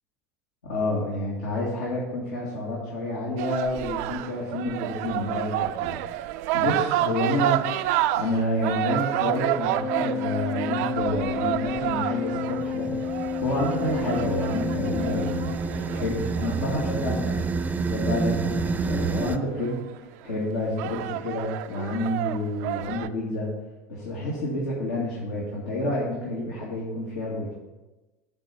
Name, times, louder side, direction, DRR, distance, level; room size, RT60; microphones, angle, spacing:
voice 1, 0.7-6.0 6.5-7.6 8.1-17.4 17.9-19.8 20.2-23.5 23.9-27.5, left 1 dB, 85° left, -6 dB, 2.1 m, -29 dB
sound 1, 3.4-17.6 19.1-19.2 19.6-20.1 20.6-23.1, right 14 dB, 70° right, 0.4 m, -29 dB
Organ, 9.7-16.2, left 5 dB, 30° left, 1.1 m, -31 dB
sound 2, 12.2-19.4, right 4 dB, 20° right, 0.5 m, -29 dB
10.0 x 4.1 x 6.0 m, 1.1 s
hypercardioid pair, 95°, 8 cm